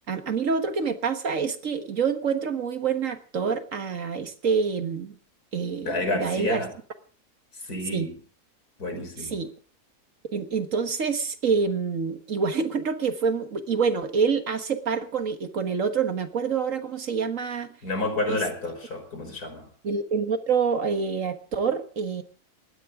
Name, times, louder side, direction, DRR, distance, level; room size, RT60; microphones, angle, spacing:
voice 1, 0.1-5.2 5.5-6.6 7.9-8.1 9.2-9.5 10.3-17.7 18.3-18.4 19.8-22.2, right 5 dB, 60° right, 9 dB, 1.8 m, -27 dB
voice 2, 5.8-6.7 7.6-8.2 8.8-9.4 17.8-19.7, left 2 dB, 75° left, 5 dB, 5.0 m, -30 dB
20.5 x 16.0 x 3.7 m, 0.39 s
omnidirectional pair, 1.6 m